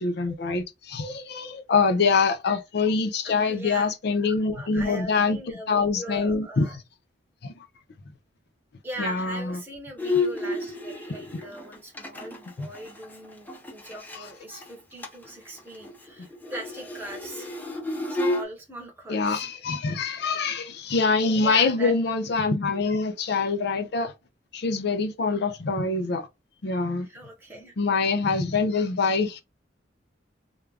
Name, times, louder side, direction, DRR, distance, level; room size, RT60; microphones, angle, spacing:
voice 1, 0.0-5.4 5.7-6.7 7.4-7.5 9.0-9.6 12.6-12.7 14.2-14.3 14.5-14.6 19.1-24.1 24.5-26.3 26.6-27.1 27.8-29.4, left 4 dB, 60° left, 0.5 m, -25 dB
voice 2, 3.2-3.9 4.3-6.8 8.8-17.5 18.1-19.5 21.4-22.1 27.1-27.7, right 1 dB, 10° right, 0.9 m, -40 dB
Bowed string instrument, 10.0-14.3 14.6-14.7 15.0-15.3 15.6-18.4, left 3 dB, 10° left, 0.5 m, -31 dB
2.3 x 2.2 x 3.2 m
head